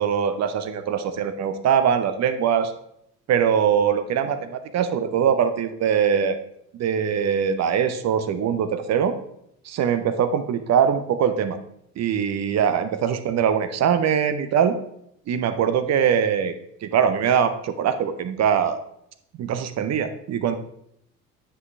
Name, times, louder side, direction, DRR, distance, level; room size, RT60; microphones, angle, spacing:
voice 1, 0.0-2.7 3.3-6.4 6.8-9.2 9.6-11.6 12.0-14.7 15.3-16.5 16.8-18.8 19.4-20.6, right 8 dB, 40° right, 11 dB, 0.7 m, -22 dB
9.5 x 5.6 x 3.3 m, 0.75 s
figure-of-eight pair, 55°, 42 cm